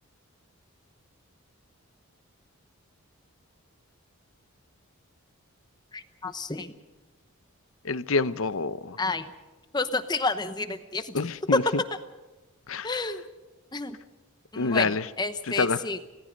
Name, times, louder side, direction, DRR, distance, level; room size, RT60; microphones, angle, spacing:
voice 1, 5.9-6.7 9.0-9.3 9.7-11.1 12.8-13.2 13.7-14.0 14.5-16.0, left 3 dB, 20° left, 10 dB, 0.9 m, -30 dB
voice 2, 7.8-9.0 11.1-11.6 12.7-12.9 14.6-15.1 15.6-15.8, left 4 dB, 65° left, 15 dB, 0.7 m, -26 dB
27.5 x 18.0 x 5.3 m, 1.2 s
head